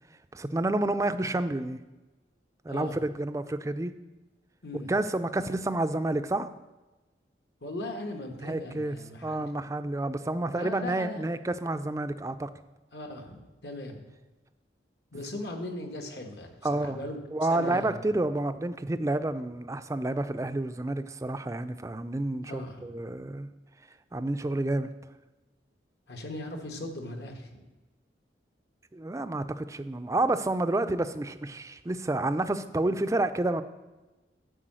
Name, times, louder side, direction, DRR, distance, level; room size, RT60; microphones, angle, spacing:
voice 1, 0.3-1.8 2.6-3.9 4.9-6.5 8.4-12.5 16.6-17.0 17.3-23.5 24.1-24.9 28.9-33.6, right 2 dB, 15° right, 11 dB, 0.4 m, -29 dB
voice 2, 2.7-3.0 4.6-4.9 7.6-9.5 10.5-11.2 12.9-14.0 15.1-17.2 17.5-18.0 22.5-22.9 26.1-27.6, left 1 dB, 70° left, 4 dB, 1.4 m, -39 dB
10.0 x 4.8 x 7.6 m, 1.1 s
head